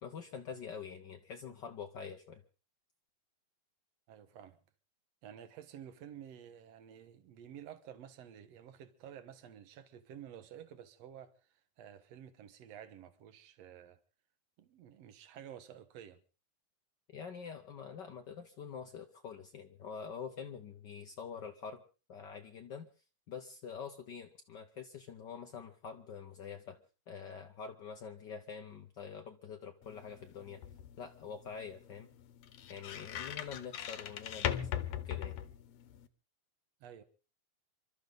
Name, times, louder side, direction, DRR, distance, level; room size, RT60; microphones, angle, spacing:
voice 1, 0.0-2.4 17.1-21.8 22.1-22.9 23.3-26.8 27.1-30.6 31.0-32.1 32.7-35.4, left 6 dB, 85° left, 0.9 m, -46 dB
voice 2, 4.1-4.6 5.2-14.0 14.6-16.2 36.8-37.0, right 9 dB, 65° right, 2.3 m, -51 dB
sound 1, 29.8-36.1, left 10 dB, 70° left, 2.0 m, -40 dB
28.0 x 12.5 x 4.0 m
omnidirectional pair, 3.4 m